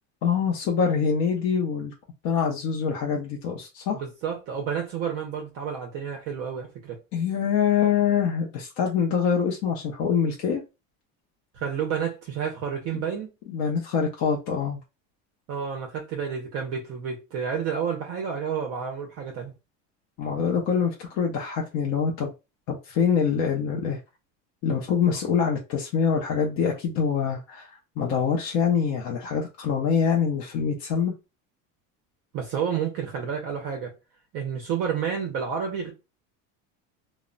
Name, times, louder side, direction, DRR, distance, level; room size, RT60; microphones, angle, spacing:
voice 1, 0.2-1.9 2.2-4.0 7.1-10.6 12.9-13.0 13.5-14.8 20.2-22.3 22.7-24.0 24.6-31.1, left 7 dB, 40° left, 0.4 m, -25 dB
voice 2, 3.9-7.0 11.5-13.3 15.5-19.5 32.3-33.9 34.3-35.9, right 7 dB, 40° right, 0.5 m, -30 dB
2.1 x 2.0 x 3.7 m
cardioid pair, 165°, 38 cm